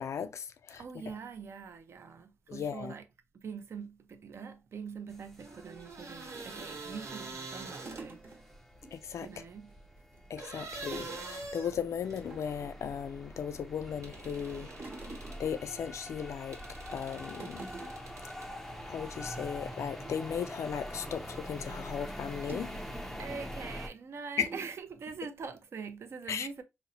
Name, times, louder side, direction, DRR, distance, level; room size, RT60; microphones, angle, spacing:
voice 1, 0.0-0.8 2.5-2.9 8.9-9.4 10.3-16.6 16.9-17.7 18.8-22.7 24.4-24.5 26.3-26.5, left 7 dB, 75° left, 0.4 m, -37 dB
voice 2, 0.8-3.0 3.3-8.2 9.2-9.7 23.2-26.6, right 5 dB, 60° right, 0.5 m, -44 dB
sound 1, 5.1-23.9, equal, 5° left, 0.4 m, -45 dB
sound 2, 5.4-8.4 10.4-12.3 14.0-15.5 16.5-18.5, right 3 dB, 75° right, 1.1 m, -45 dB
sound 3, 6.3-8.9 9.2-9.4 9.7-10.3 10.9-11.3 11.5-11.7 12.0-12.8 13.4-13.9 14.2-16.4 16.8-17.0 17.3-18.2 18.5-18.7 19.0-19.2 19.6-21.4 22.5-23.2 23.8-23.9 24.4-24.8, right 3 dB, 40° right, 1.0 m, -48 dB
3.9 x 2.0 x 2.7 m
wide cardioid pair, 160°, 5 cm